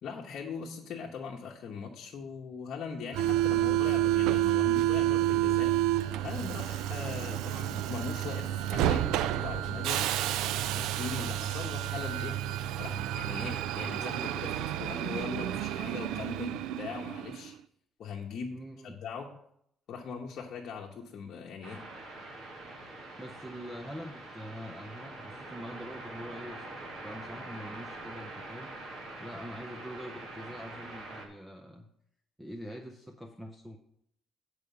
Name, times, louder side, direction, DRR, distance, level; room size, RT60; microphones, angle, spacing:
voice 1, 0.0-5.7 6.2-10.1 10.7-12.3 12.8-17.5 18.0-18.5 18.9-19.3 19.9-21.8, left 5 dB, 50° left, -2 dB, 1.0 m, -40 dB
Subway metro underground, 3.1-17.5, right 13 dB, 85° right, 0.3 m, -30 dB
voice 2, 18.5-19.0 23.2-28.7 29.2-31.9 32.4-33.8, equal, 5° right, 4 dB, 0.6 m, -44 dB
sound 1, 21.6-31.3, right 2 dB, 45° right, 2.0 m, -44 dB
9.0 x 4.9 x 6.8 m, 0.72 s
cardioid pair, 170°, 0 cm